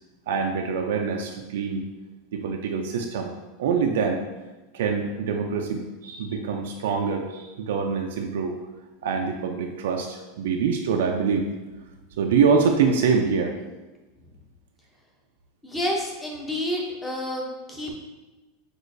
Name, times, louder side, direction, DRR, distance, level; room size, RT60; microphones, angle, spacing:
voice 1, 0.3-1.9 2.3-4.2 4.7-8.6 9.0-11.5 12.2-13.6, right 5 dB, 85° right, 2 dB, 0.4 m, -25 dB
voice 2, 15.6-17.9, left 1 dB, 10° left, -2 dB, 0.6 m, -29 dB
6.2 x 2.4 x 2.6 m, 1.1 s
supercardioid pair, 165°, 0 cm